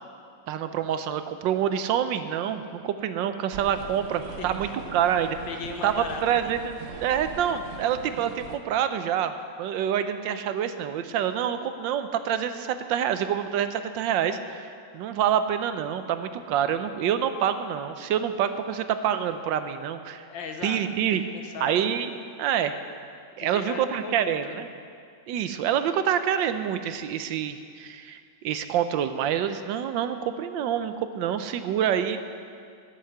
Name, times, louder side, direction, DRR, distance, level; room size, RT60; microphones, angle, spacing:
voice 1, 0.5-5.4 5.8-20.2 20.6-21.2 21.6-22.1 22.4-22.7 23.4-24.7 25.3-32.2, right 9 dB, 80° right, 10 dB, 1.4 m, -27 dB
sound 1, 3.5-8.6, right 5 dB, 65° right, 0.6 m, -41 dB
voice 2, 4.3-4.9 5.5-6.5 20.3-20.8 21.1-21.8 23.4-24.6, left 5 dB, 85° left, 5 dB, 1.7 m, -38 dB
11.5 x 7.7 x 7.7 m, 2.3 s
omnidirectional pair, 2.0 m